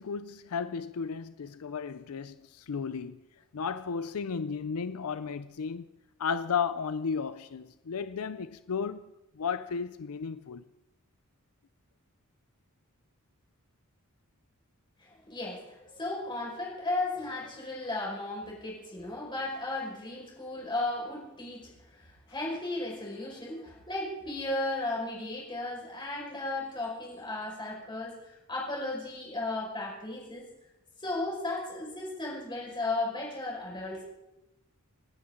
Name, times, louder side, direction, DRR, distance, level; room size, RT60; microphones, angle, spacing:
voice 1, 0.0-3.2 3.5-5.9 6.2-9.0 9.4-10.7, left 6 dB, 80° left, 0.5 m, -34 dB
voice 2, 15.0-30.5 31.0-34.0, left 2 dB, 20° left, 5.2 m, -35 dB
28.5 x 9.8 x 3.8 m
head